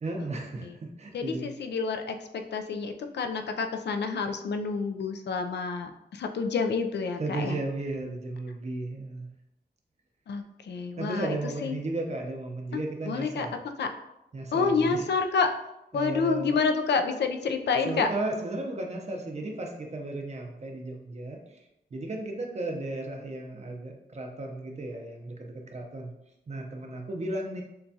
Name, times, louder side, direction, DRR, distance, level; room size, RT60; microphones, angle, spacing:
voice 1, 0.0-1.5 7.2-9.3 11.0-13.6 14.3-15.0 15.9-16.6 17.8-21.6 21.9-26.1 26.5-27.6, right 2 dB, 40° right, 1 dB, 0.7 m, -34 dB
voice 2, 1.1-7.6 10.3-11.4 11.6-11.8 13.1-13.5 13.8-13.9 14.5-15.5 15.9-18.1, left 4 dB, 85° left, 6 dB, 0.5 m, -28 dB
6.7 x 2.3 x 2.7 m, 0.85 s
wide cardioid pair, 140°, 17 cm